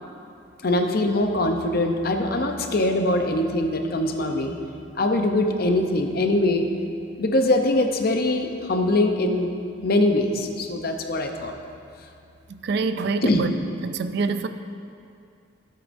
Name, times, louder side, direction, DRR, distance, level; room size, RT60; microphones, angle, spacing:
voice 1, 0.6-4.6 5.0-6.7 7.2-9.5 9.8-11.5 13.2-13.4, left 1 dB, 55° left, 5 dB, 0.7 m, -22 dB
voice 2, 12.5-13.5 13.8-14.5, right 4 dB, 60° right, 10 dB, 0.4 m, -26 dB
13.0 x 8.4 x 2.6 m, 2.5 s
head